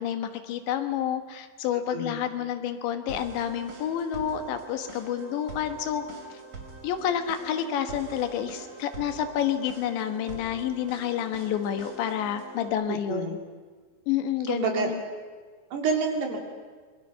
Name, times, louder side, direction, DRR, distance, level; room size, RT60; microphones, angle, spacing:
voice 1, 0.0-6.0 6.3-6.4 6.8-13.4 14.1-15.0, left 9 dB, 80° left, 8 dB, 3.6 m, -29 dB
voice 2, 1.9-2.3 12.9-13.4 14.5-15.0 15.7-16.4, right 4 dB, 65° right, 2 dB, 4.6 m, -28 dB
sound 1, 3.1-12.7, right 3 dB, 30° right, 2.9 m, -44 dB
27.0 x 22.5 x 5.6 m, 1.5 s
omnidirectional pair, 5.1 m